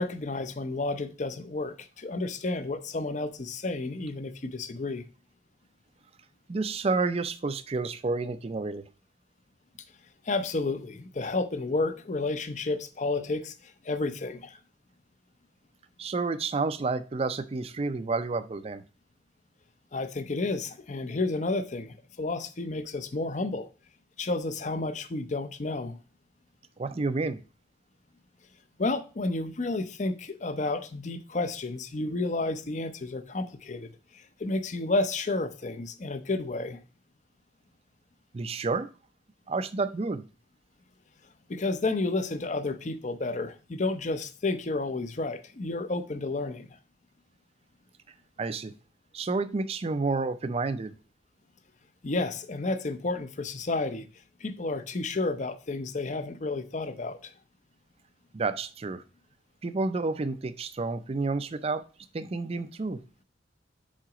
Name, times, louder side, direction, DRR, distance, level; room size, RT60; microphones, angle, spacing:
voice 1, 0.0-5.0 10.2-14.6 19.9-23.7 24.2-26.0 28.8-36.8 41.5-46.7 52.0-54.1 54.4-57.3, left 2 dB, 40° left, 0.6 m, -31 dB
voice 2, 6.5-8.8 16.0-18.8 26.8-27.4 38.3-38.9 39.5-40.2 48.4-48.7 49.1-50.9 58.3-59.0 59.6-61.8 62.1-63.0, right 3 dB, 35° right, 0.4 m, -30 dB
7.4 x 4.0 x 4.9 m
head